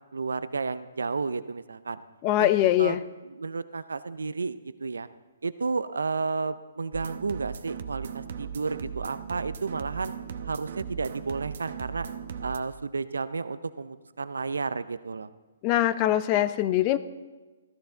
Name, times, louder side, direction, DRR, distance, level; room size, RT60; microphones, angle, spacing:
voice 1, 0.1-2.0 2.4-2.5 2.8-3.0 3.3-5.1 5.4-10.1 10.5-12.1 12.4-15.3, right 4 dB, 80° right, 14 dB, 0.5 m, -32 dB
voice 2, 2.2-3.0 15.6-17.0, left 13 dB, 30° left, 15 dB, 0.6 m, -22 dB
sound 1, 6.9-12.6, right 7 dB, 60° right, 0.9 m, -38 dB
14.0 x 13.5 x 3.8 m, 1.2 s
hypercardioid pair, 140°, 0 cm